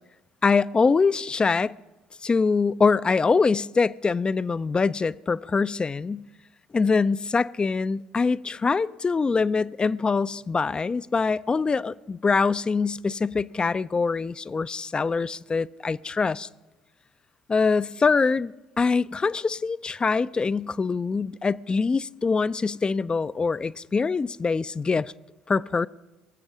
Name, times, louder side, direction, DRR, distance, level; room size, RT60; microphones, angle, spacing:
voice 1, 0.4-1.7 2.2-6.2 6.7-16.5 17.5-18.5 18.8-25.1 25.5-25.9, left 4 dB, 25° left, 0.4 m, -24 dB
23.0 x 7.9 x 6.2 m
hypercardioid pair, 55°, 3 cm